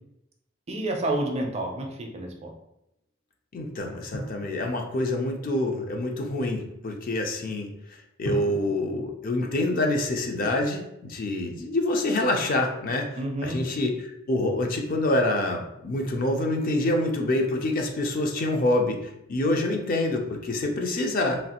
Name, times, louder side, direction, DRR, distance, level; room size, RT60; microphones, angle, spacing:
voice 1, 0.7-2.5 13.2-13.6, right 1 dB, 35° right, 1 dB, 0.4 m, -29 dB
voice 2, 3.5-7.7 8.2-13.1 13.4-13.9 14.3-19.0 19.3-21.4, left 1 dB, 45° left, 2 dB, 0.4 m, -26 dB
Drum, 4.1-5.6 8.2-10.4, equal, 65° left, 0.9 m, -39 dB
3.1 x 2.3 x 2.8 m, 0.83 s
head